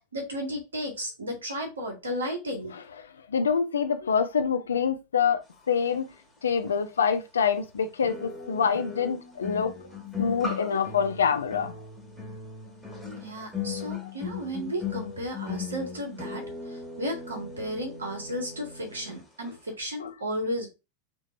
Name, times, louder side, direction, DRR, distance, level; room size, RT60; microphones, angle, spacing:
voice 1, 0.1-2.7 13.2-20.7, equal, 70° right, 1.6 m, -34 dB
voice 2, 3.3-6.0 6.4-9.8 10.2-11.7 13.9-14.0 20.0-20.1, left 6 dB, 70° left, 0.6 m, -26 dB
sound 1, 6.7-6.8 8.1-19.2 19.4-19.7, left 6 dB, 5° right, 1.8 m, -38 dB
6.1 x 3.0 x 2.6 m
figure-of-eight pair, 90°, 0 cm